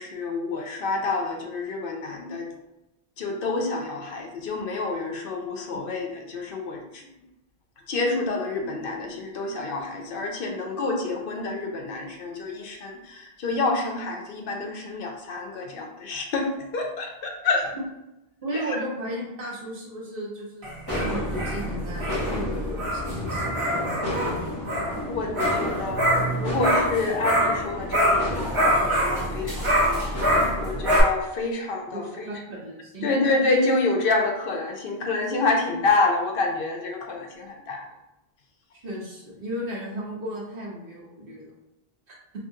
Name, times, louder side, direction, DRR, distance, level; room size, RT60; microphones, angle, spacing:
voice 1, 0.0-2.5 3.2-6.1 6.3-7.0 7.9-17.7 18.5-18.6 25.1-30.0 30.6-32.0 33.0-37.9, left 3 dB, 65° left, 2 dB, 0.7 m, -28 dB
voice 2, 18.4-24.3 25.3-25.7 31.9-33.1 38.8-41.5, equal, 60° right, -5 dB, 1.2 m, -35 dB
sound 1, 20.6-27.6 27.9-31.0, equal, 30° right, 0.9 m, -25 dB
sound 2, 20.9-31.0, left 1 dB, 25° left, 0.9 m, -33 dB
3.6 x 2.7 x 2.7 m, 0.92 s
omnidirectional pair, 1.0 m